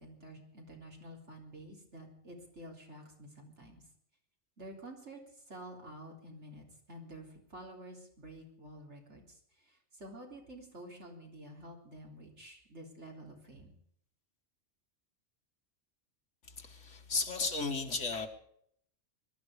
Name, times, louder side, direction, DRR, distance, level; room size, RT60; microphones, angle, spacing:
voice 1, 0.0-3.8 4.6-13.7, right 1 dB, 75° right, 0 dB, 4.0 m, -50 dB
voice 2, 16.6-18.3, left 4 dB, 80° left, 5 dB, 2.2 m, -34 dB
21.5 x 12.5 x 5.0 m, 0.67 s
omnidirectional pair, 1.2 m